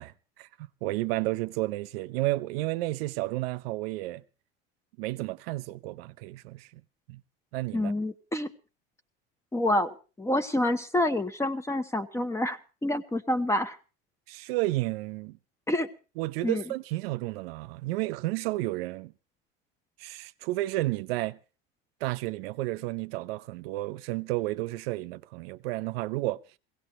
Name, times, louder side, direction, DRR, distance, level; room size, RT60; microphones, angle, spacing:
voice 1, 0.0-4.2 5.0-6.8 7.1-7.2 7.5-7.9 14.3-15.4 16.2-19.1 20.0-21.4 22.0-26.4, right 19 dB, 75° right, 0.7 m, -32 dB
voice 2, 7.7-8.5 9.5-13.8 15.7-15.9 16.4-16.7, left 1 dB, 10° left, 0.9 m, -28 dB
21.5 x 17.0 x 3.1 m
supercardioid pair, 115°, 30 cm